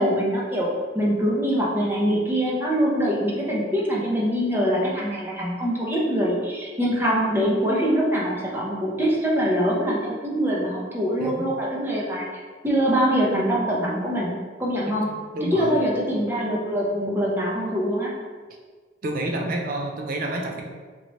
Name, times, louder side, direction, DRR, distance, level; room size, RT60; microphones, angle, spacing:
voice 1, 0.0-12.3 12.6-15.1 15.4-18.1, equal, 10° right, -5 dB, 0.8 m, -23 dB
voice 2, 11.2-11.5 15.3-15.8 19.0-20.6, right 1 dB, 50° right, 1 dB, 0.5 m, -28 dB
4.1 x 3.1 x 3.1 m, 1.5 s
head